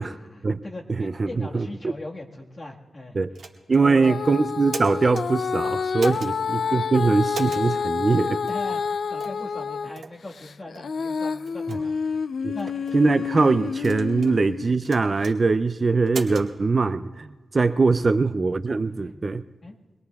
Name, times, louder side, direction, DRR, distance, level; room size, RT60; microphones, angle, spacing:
voice 1, 0.0-3.2 3.7-4.2 6.1-6.4 8.5-12.2 12.5-12.7 17.8-18.1 18.9-19.2 19.6-19.8, left 2 dB, 30° left, 0 dB, 1.6 m, -39 dB
voice 2, 1.0-1.7 3.2-3.3 3.7-8.4 11.7-11.8 12.4-12.6 12.9-17.3 17.5-19.4, right 4 dB, 35° right, 12 dB, 0.4 m, -22 dB
sound 1, 3.3-3.8 4.5-5.2 6.0-6.3 7.3-7.7 8.5-8.6 9.2-9.4 9.9-10.1 10.7-10.9 11.4-11.8 12.6-13.0 13.8-14.4 14.8-15.3 16.1-16.5, right 5 dB, 80° right, 1.6 m, -37 dB
Female singing, 4.0-9.9 10.4-14.7 15.3-15.4, left 5 dB, 60° left, 0.4 m, -28 dB
24.0 x 21.5 x 2.3 m, 1.3 s
wide cardioid pair, 135°, 0 cm